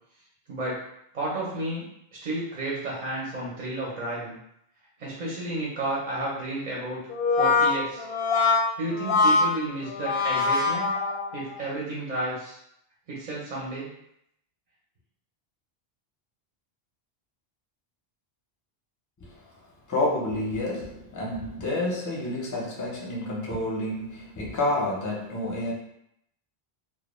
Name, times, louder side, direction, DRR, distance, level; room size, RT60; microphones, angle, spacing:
voice 1, 0.5-0.8 1.1-1.9 2.2-4.4 5.0-7.0 7.4-8.1 8.8-10.9 11.3-12.6 13.1-13.9, right 2 dB, 50° right, -5 dB, 0.7 m, -32 dB
Brass instrument, 7.1-11.6, left 4 dB, 90° left, 0.8 m, -23 dB
voice 2, 19.2-25.7, left 1 dB, 25° left, -3 dB, 0.4 m, -29 dB
2.1 x 2.0 x 3.0 m, 0.74 s
omnidirectional pair, 1.0 m